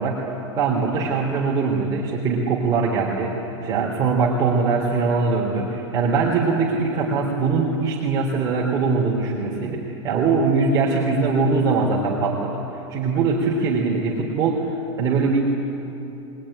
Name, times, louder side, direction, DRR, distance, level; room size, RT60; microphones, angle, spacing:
voice 1, 0.0-12.6 12.9-14.7 15.0-15.4, right 4 dB, 25° right, -4 dB, 3.3 m, -22 dB
22.5 x 21.5 x 10.0 m, 2.9 s
supercardioid pair, 160°, 16 cm